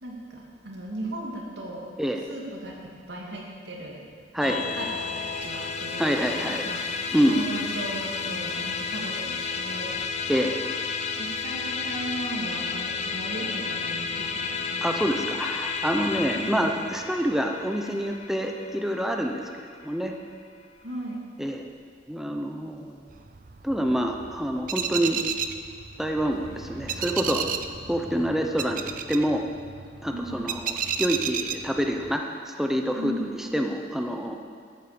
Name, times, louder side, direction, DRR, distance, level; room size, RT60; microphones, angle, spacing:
voice 1, 0.0-1.9 2.3-2.7 3.1-4.0 4.4-6.0 6.3-6.8 7.3-9.9 11.2-15.0 16.3-16.8 20.8-21.3 30.1-30.6 33.0-33.4, right 1 dB, 90° right, -2 dB, 2.6 m, -36 dB
Musical instrument, 4.4-19.9, left 5 dB, 40° left, 0.7 m, -32 dB
voice 2, 6.0-6.6 7.1-7.4 10.3-10.6 14.8-20.2 21.4-21.7 22.1-23.0 23.6-25.2 26.0-27.4 27.9-29.4 30.0-34.4, equal, ahead, 3 dB, 0.7 m, -27 dB
sound 1, 23.1-32.2, right 7 dB, 50° right, 0.6 m, -33 dB
Boom, 26.3-31.0, equal, 70° left, 3.6 m, -49 dB
12.5 x 8.6 x 7.0 m, 2.1 s
head